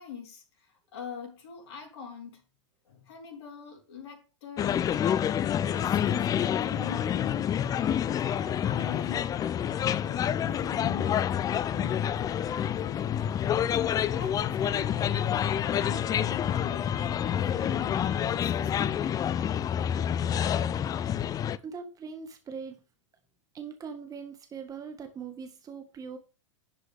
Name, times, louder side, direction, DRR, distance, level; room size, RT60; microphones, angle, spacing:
voice 1, 0.0-2.4 2.8-4.9 5.6-9.3 10.0-19.2, left 7 dB, 60° left, 4.1 m, -44 dB
sound 1, 4.6-21.6, left 9 dB, 25° left, 0.6 m, -28 dB
voice 2, 21.6-22.8 23.5-26.2, right 6 dB, 20° right, 1.7 m, -41 dB
11.0 x 8.0 x 3.6 m
figure-of-eight pair, 95°, 16 cm